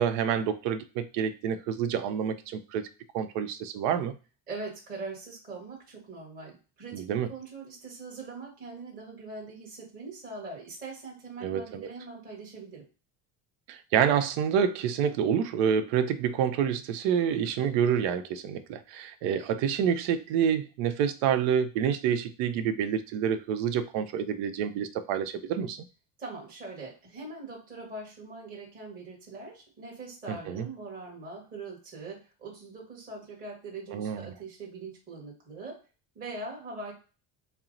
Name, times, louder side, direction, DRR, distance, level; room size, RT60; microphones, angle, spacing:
voice 1, 0.0-2.9 3.1-4.1 6.9-7.3 11.4-11.9 13.7-25.8 30.3-30.7 33.9-34.3, right 8 dB, 75° right, 9 dB, 0.6 m, -28 dB
voice 2, 4.5-12.8 26.2-35.8 36.1-36.9, right 3 dB, 20° right, -3 dB, 1.3 m, -42 dB
4.3 x 2.0 x 3.8 m, 0.33 s
cardioid pair, 175°, 41 cm